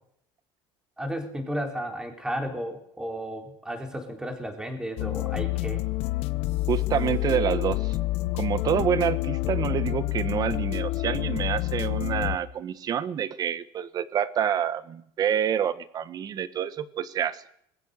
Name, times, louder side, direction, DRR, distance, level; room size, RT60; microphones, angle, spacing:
voice 1, 1.0-5.9, equal, 5° right, 4 dB, 4.0 m, -33 dB
sound 1, 5.0-12.4, left 19 dB, 60° left, 1.1 m, -28 dB
voice 2, 6.7-8.0 8.3-17.4, right 9 dB, 35° right, 14 dB, 1.4 m, -27 dB
26.0 x 21.0 x 6.7 m, 0.70 s
cardioid pair, 155°, 11 cm